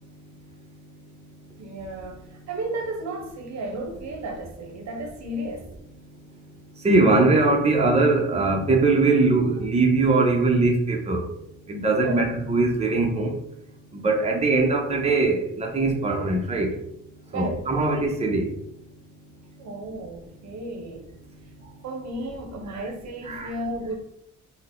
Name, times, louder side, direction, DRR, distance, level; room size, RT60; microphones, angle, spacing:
voice 1, 1.6-5.7 12.0-12.2 17.3-17.7 19.6-21.1 21.8-24.0, right 1 dB, 65° right, 0.8 m, -33 dB
voice 2, 6.8-11.2 11.7-13.3 14.0-16.7 17.3-18.5 23.2-23.5, right 3 dB, 20° right, 0.8 m, -21 dB
4.2 x 2.2 x 3.7 m
cardioid pair, 90°, 30 cm